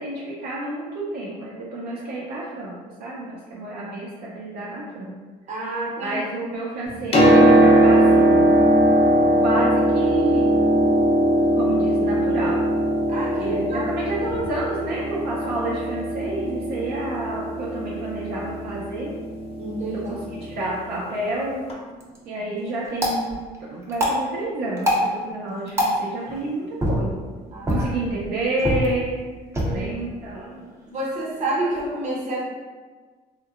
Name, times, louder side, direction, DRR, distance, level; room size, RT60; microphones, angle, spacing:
voice 1, 0.0-5.1 6.0-8.5 9.4-10.5 11.5-12.6 13.4-19.1 19.9-21.6 22.3-23.4 23.7-27.1 27.7-29.2 29.7-30.6, right 2 dB, 70° right, -5 dB, 0.5 m, -29 dB
voice 2, 5.5-6.2 13.1-14.4 19.6-20.1 27.5-27.9 29.6-30.1 30.9-32.4, right 2 dB, 45° right, -4 dB, 0.8 m, -29 dB
Piano, 6.9-20.6 21.7-21.8, right 1 dB, 35° left, 0.5 m, -20 dB
sound 1, 21.8-31.9, equal, 15° right, 0.5 m, -28 dB
2.6 x 2.1 x 2.4 m, 1.4 s
cardioid pair, 110°, 17 cm